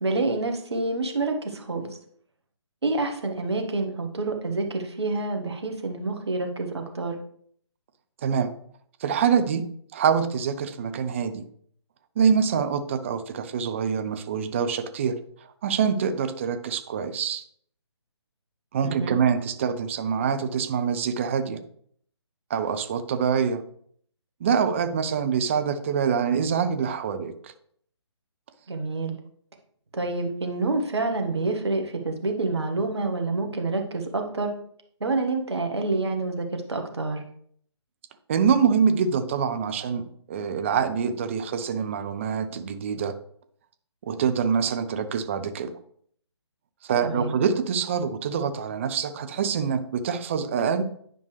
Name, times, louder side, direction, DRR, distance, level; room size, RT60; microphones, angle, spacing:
voice 1, 0.0-1.9 2.8-7.2 18.8-19.2 28.7-29.2 29.9-34.5 35.0-37.2 47.0-47.4, right 3 dB, 65° right, 4 dB, 1.6 m, -27 dB
voice 2, 8.2-8.5 9.0-9.6 9.9-11.4 12.2-15.2 15.6-17.4 18.7-21.6 22.5-23.7 24.4-27.5 38.3-43.1 44.1-45.7 46.8-50.8, right 6 dB, 25° right, 9 dB, 0.6 m, -25 dB
9.9 x 5.2 x 3.3 m, 0.62 s
figure-of-eight pair, 145°, 15 cm